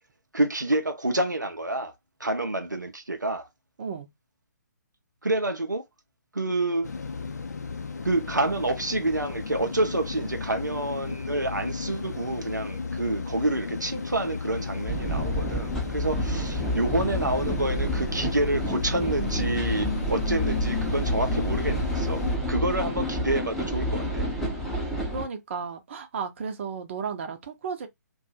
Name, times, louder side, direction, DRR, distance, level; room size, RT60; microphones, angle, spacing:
voice 1, 0.3-1.9 2.2-3.5 5.2-5.9 6.3-6.9 8.0-22.2 22.5-24.3, right 2 dB, 90° right, 0.5 m, -28 dB
voice 2, 3.8-4.1 25.1-27.9, right 5 dB, 40° right, 0.7 m, -34 dB
sound 1, 6.8-22.4, left 5 dB, 65° left, 0.5 m, -34 dB
sound 2, 14.9-25.3, equal, ahead, 0.7 m, -29 dB
2.7 x 2.3 x 2.6 m
figure-of-eight pair, 130°, 10 cm